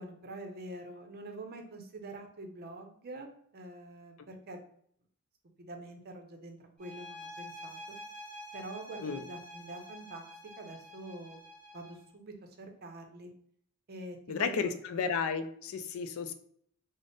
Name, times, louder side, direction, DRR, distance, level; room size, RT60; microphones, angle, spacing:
voice 1, 0.0-4.6 5.6-8.0 8.5-10.3 10.6-11.4 11.7-13.3 13.9-14.7, right 2 dB, 45° right, 5 dB, 0.5 m, -45 dB
sound 1, 6.8-12.1, left 1 dB, 5° left, 1.3 m, -48 dB
voice 2, 14.3-16.3, left 5 dB, 70° left, 9 dB, 0.3 m, -33 dB
3.4 x 2.0 x 3.9 m, 0.64 s
head